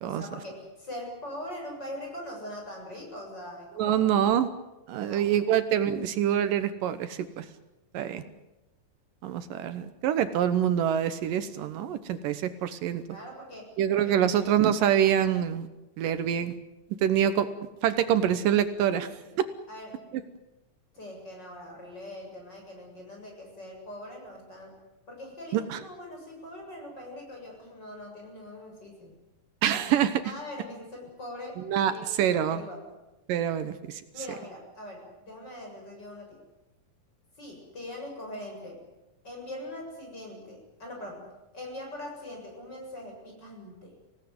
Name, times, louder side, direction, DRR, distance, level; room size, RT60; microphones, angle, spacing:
voice 1, 0.0-4.0 5.0-5.4 8.0-8.3 13.1-13.7 14.0-14.2 19.0-19.4 19.7-20.0 20.9-24.7 25.1-29.2 29.7-32.8 34.1-36.4 37.4-38.8 39.2-41.2 41.5-44.0, left 1 dB, 30° left, 1 dB, 8.0 m, -42 dB
voice 2, 3.8-4.5 4.9-7.5 7.9-8.2 9.2-13.0 13.8-15.7 16.0-16.5 17.0-17.5 17.8-19.1 25.5-25.8 29.6-30.2 31.7-32.6 33.3-34.0, right 10 dB, 75° right, 11 dB, 2.6 m, -25 dB
26.0 x 17.5 x 9.5 m, 0.99 s
omnidirectional pair, 4.0 m